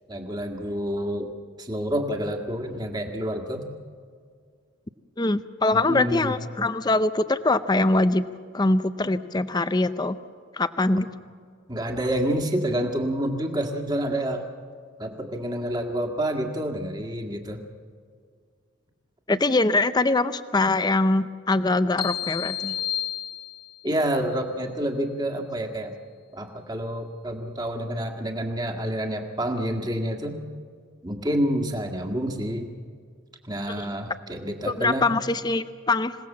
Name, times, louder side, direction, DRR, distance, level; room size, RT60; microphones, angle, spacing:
voice 1, 0.1-1.3 1.6-3.6 5.7-6.3 11.7-14.4 15.0-17.6 23.8-25.9 26.3-30.4 31.0-32.7 33.4-35.1, right 1 dB, 20° right, 3 dB, 1.8 m, -28 dB
voice 2, 5.2-8.3 8.5-10.2 10.5-11.1 19.3-22.8 34.7-36.2, left 2 dB, 20° left, 12 dB, 0.5 m, -23 dB
sound 1, 22.0-23.9, left 11 dB, 40° left, 1.9 m, -31 dB
26.5 x 18.0 x 7.4 m, 2.1 s
head